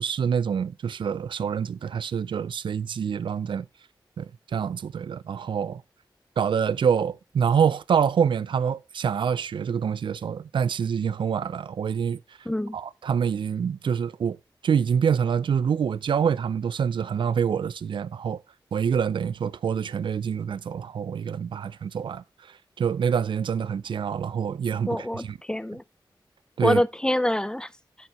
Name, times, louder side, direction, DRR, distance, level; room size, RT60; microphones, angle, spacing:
voice 1, 0.0-3.7 4.2-5.8 6.4-12.2 12.7-14.4 14.6-18.4 18.7-22.2 22.8-25.4 26.6-26.8, right 7 dB, 75° right, 0.4 m, -26 dB
voice 2, 12.5-12.8 24.9-25.8 26.6-27.7, left 1 dB, 10° left, 0.5 m, -25 dB
12.0 x 4.6 x 3.0 m
cardioid pair, 55°, 8 cm